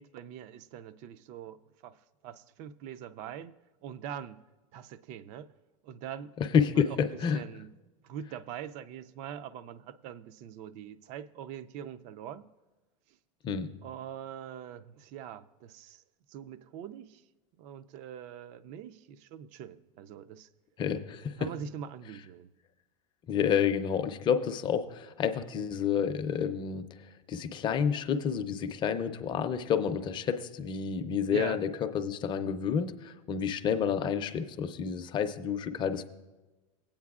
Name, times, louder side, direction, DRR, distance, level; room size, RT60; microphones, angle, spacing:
voice 1, 0.0-1.6 1.8-2.0 2.2-3.5 3.8-4.4 4.7-5.5 5.8-6.3 6.7-7.7 8.0-12.5 13.8-16.0 16.3-17.2 17.6-20.5 21.4-22.5 31.3-31.6, right 9 dB, 45° right, 14 dB, 0.4 m, -43 dB
voice 2, 6.4-7.4 13.4-13.7 20.8-21.5 23.3-31.7 31.9-36.0, left 7 dB, 30° left, 8 dB, 0.5 m, -29 dB
18.0 x 8.6 x 2.4 m, 1.2 s
supercardioid pair, 135°, 17 cm